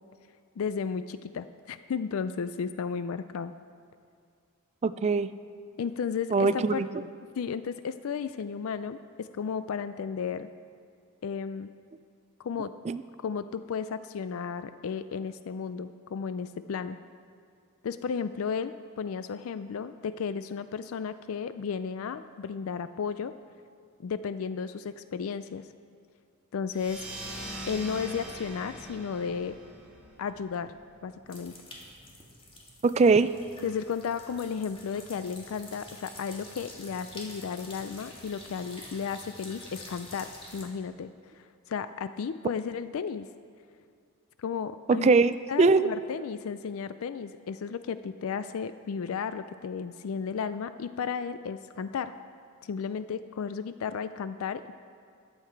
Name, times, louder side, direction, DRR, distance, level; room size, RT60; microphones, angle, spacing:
voice 1, 0.6-3.5 5.8-6.8 7.4-10.5 11.2-11.7 12.4-12.7 13.2-17.0 17.8-23.3 24.0-25.7 26.5-27.1 27.7-29.6 30.2-30.7 31.0-31.6 33.6-43.3 44.4-45.1 45.5-52.2 52.6-54.8, left 6 dB, 70° left, 12 dB, 0.4 m, -34 dB
voice 2, 4.8-5.3 6.3-7.0 12.9-13.0 32.8-33.3 44.9-45.9, right 4 dB, 30° right, 13 dB, 0.3 m, -22 dB
sound 1, 26.7-31.8, right 1 dB, 5° right, 2.1 m, -42 dB
sound 2, 31.3-40.6, left 1 dB, 25° left, 1.9 m, -47 dB
14.0 x 10.0 x 4.6 m, 2.3 s
head